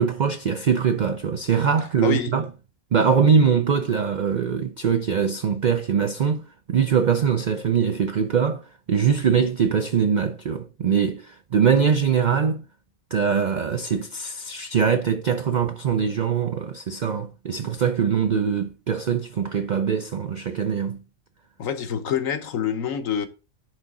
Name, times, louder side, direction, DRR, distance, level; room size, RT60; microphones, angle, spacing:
voice 1, 0.0-2.5 2.9-12.6 13.1-21.0, right 7 dB, 70° right, 0.4 m, -22 dB
voice 2, 2.0-2.3 21.6-23.3, left 8 dB, 70° left, 1.3 m, -26 dB
9.9 x 3.7 x 3.7 m
omnidirectional pair, 1.4 m